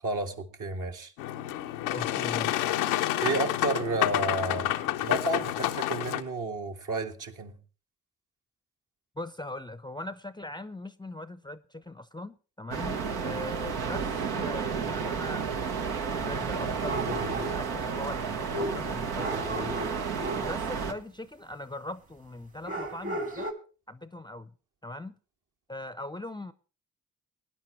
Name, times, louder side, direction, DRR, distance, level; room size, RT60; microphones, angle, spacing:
voice 1, 0.0-1.1 3.2-4.7 5.0-7.6, right 2 dB, 55° right, 1.9 m, -31 dB
Boat Water vehicle, 1.2-6.2, left 13 dB, 90° left, 0.7 m, -29 dB
voice 2, 1.9-2.6 9.2-19.9 20.4-23.5 23.9-24.5 24.8-25.1 25.7-26.5, left 1 dB, 10° left, 0.7 m, -40 dB
sound 1, 12.7-20.9, right 6 dB, 75° right, 1.3 m, -32 dB
sound 2, 14.6-14.7 16.8-17.7 18.5-20.6 22.7-23.5, right 1 dB, 35° right, 2.0 m, -34 dB
19.5 x 10.5 x 3.2 m
hypercardioid pair, 45°, 37 cm